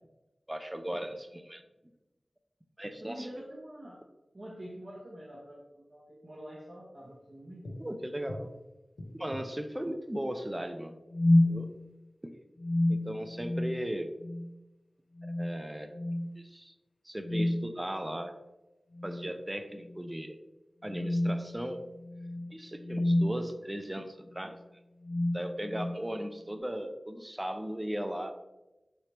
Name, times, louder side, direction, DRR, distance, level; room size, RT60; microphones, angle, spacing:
voice 1, 0.5-1.6 2.8-3.3 7.8-8.5 9.1-11.0 11.4-11.7 12.9-14.1 15.2-15.9 16.4-16.7 17.0-18.3 19.0-20.4 20.8-21.8 22.5-24.6 25.3-28.3, equal, 20° right, 8 dB, 0.3 m, -37 dB
voice 2, 3.0-4.0 4.3-7.8, equal, 45° right, -6 dB, 0.7 m, -46 dB
sound 1, 7.7-7.8 8.3-8.5 9.0-9.5 11.1-11.6 12.6-13.9 14.2-14.5 15.2-15.6 15.9-16.3 17.2-17.8 18.9-19.4 19.8-20.0 20.9-23.4 24.3-24.6 25.0-26.1, left 1 dB, 90° left, 0.5 m, -30 dB
3.2 x 2.8 x 2.9 m, 1.0 s
cardioid pair, 45°, 0 cm